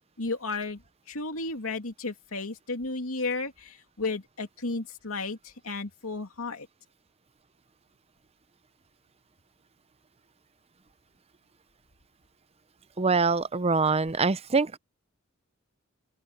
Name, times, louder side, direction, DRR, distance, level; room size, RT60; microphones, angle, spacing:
voice 1, 0.2-0.8 1.1-6.7, left 3 dB, 85° left, 2.7 m, -33 dB
voice 2, 13.0-14.8, right 4 dB, 30° right, 0.6 m, -24 dB
open air
head